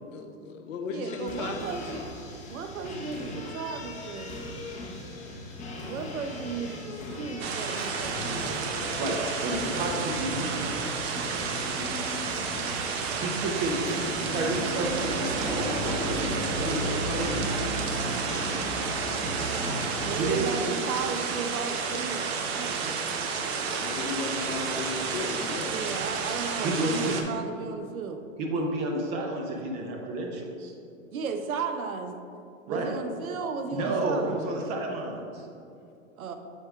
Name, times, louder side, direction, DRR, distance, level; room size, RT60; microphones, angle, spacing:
voice 1, 0.1-1.6 23.8-25.9, left 4 dB, 65° left, 5 dB, 0.9 m, -35 dB
voice 2, 0.9-2.1 2.5-4.4 5.8-8.5 20.0-23.0 25.7-28.2 31.1-32.2 32.7-34.5 36.2-36.3, right 5 dB, 80° right, 7 dB, 0.8 m, -35 dB
sound 1, 1.0-20.8, left 2 dB, 15° left, 0.9 m, -40 dB
sound 2, 1.6-20.2, right 1 dB, 65° right, 1.4 m, -37 dB
sound 3, 7.4-27.2, right 5 dB, 50° right, 0.7 m, -31 dB
voice 3, 9.0-10.8 13.2-13.8 14.3-16.3 16.6-17.6 20.1-20.5 26.6-27.3 28.4-30.7 32.7-33.0 33.7-35.4, right 2 dB, 20° right, 1 dB, 0.4 m, -31 dB
7.3 x 4.5 x 3.5 m, 2.6 s
hypercardioid pair, 125°, 41 cm